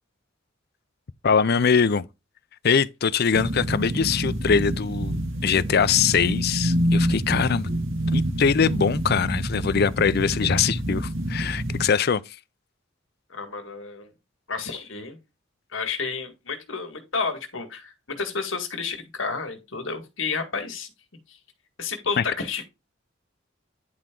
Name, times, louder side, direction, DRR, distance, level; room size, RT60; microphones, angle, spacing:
voice 1, 1.2-2.1 2.6-7.7 8.1-12.2 22.2-22.3, left 6 dB, 55° left, 0.5 m, -22 dB
sound 1, 3.3-11.8, equal, 80° right, 2.0 m, -27 dB
voice 2, 13.3-14.1 14.5-15.2 15.7-20.9 21.3-21.4 21.8-22.7, left 5 dB, 80° left, 1.8 m, -31 dB
10.5 x 4.5 x 3.8 m
head